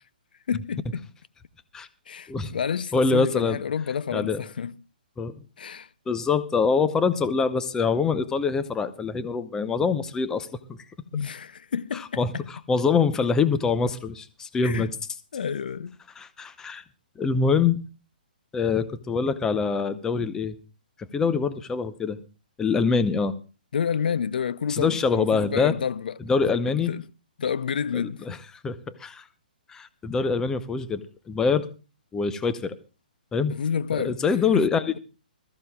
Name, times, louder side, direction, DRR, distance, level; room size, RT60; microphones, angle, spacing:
voice 1, 0.5-1.0 2.1-4.7 5.6-5.9 11.1-12.4 14.6-14.9 15.3-16.0 23.7-26.1 26.7-27.1 27.4-28.3 33.5-34.2 34.5-34.7, left 7 dB, 70° left, 0.5 m, -29 dB
voice 2, 2.9-3.6 4.1-4.4 5.2-5.3 6.1-10.8 12.2-12.3 12.7-14.9 16.2-16.8 17.2-17.8 18.5-20.6 21.1-22.2 22.6-23.3 24.7-25.7 26.3-26.9 28.3-28.4 28.6-29.2 29.7-31.7 32.1-32.8 33.3-33.6 33.9-34.9, left 5 dB, 10° left, 0.7 m, -24 dB
21.5 x 14.0 x 2.3 m
hypercardioid pair, 140°, 5 cm